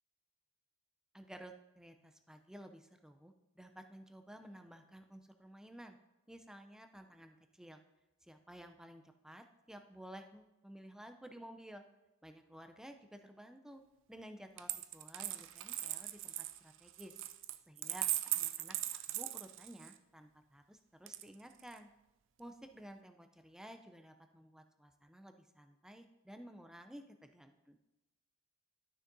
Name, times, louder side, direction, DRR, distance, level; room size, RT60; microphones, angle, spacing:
voice 1, 1.1-6.0 6.3-7.8 8.2-11.8 12.2-13.8 14.1-17.1 17.7-21.9 22.4-27.8, equal, 5° right, 6 dB, 0.4 m, -54 dB
Coin (dropping), 14.6-20.0 21.1-21.8, right 15 dB, 65° right, 0.4 m, -39 dB
12.0 x 6.3 x 2.6 m, 1.0 s
head